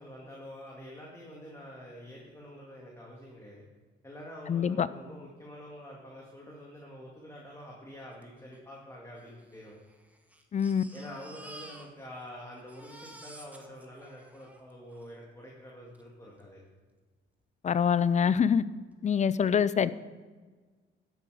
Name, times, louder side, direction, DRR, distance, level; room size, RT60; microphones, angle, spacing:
voice 1, 0.0-3.6 4.0-9.8 10.9-16.6, equal, 15° left, -3 dB, 2.2 m, -47 dB
voice 2, 4.5-4.9 10.5-10.8 17.6-18.6 19.0-19.9, left 7 dB, 35° left, 16 dB, 0.5 m, -25 dB
Crying sobbing, 8.2-8.3 8.5-8.6 9.4-12.3 12.5-15.1 15.9-16.0 16.4-16.5, right 1 dB, 5° right, 1.3 m, -51 dB
12.5 x 7.9 x 4.9 m, 1.4 s
cardioid pair, 90°, 20 cm